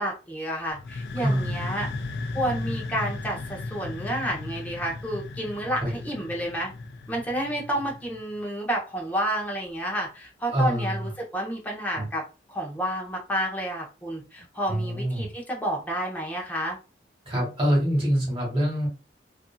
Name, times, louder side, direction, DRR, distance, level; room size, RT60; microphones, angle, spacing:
voice 1, 0.0-1.9 2.3-6.7 7.1-12.2 12.5-16.8, right 1 dB, 10° left, -1 dB, 0.7 m, -30 dB
sound 1, 0.7-8.3, left 3 dB, 65° left, 0.4 m, -35 dB
voice 2, 1.2-1.5 5.8-5.9 10.5-11.1 11.9-12.1 14.7-15.3 17.2-18.9, equal, 30° right, -4 dB, 1.4 m, -25 dB
2.6 x 2.6 x 2.3 m, 0.31 s
head